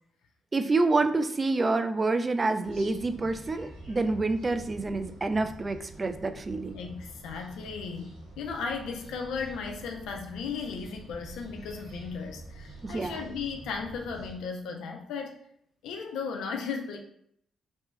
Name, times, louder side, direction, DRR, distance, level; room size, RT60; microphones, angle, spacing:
voice 1, 0.5-6.8 12.8-13.3, right 3 dB, 35° right, 9 dB, 0.3 m, -27 dB
sound 1, 2.6-14.3, right 2 dB, 85° right, 0.9 m, -46 dB
voice 2, 6.7-15.4 15.8-17.0, left 5 dB, 75° left, 3 dB, 0.3 m, -36 dB
2.9 x 2.2 x 3.1 m, 0.69 s
hypercardioid pair, 40°, 0 cm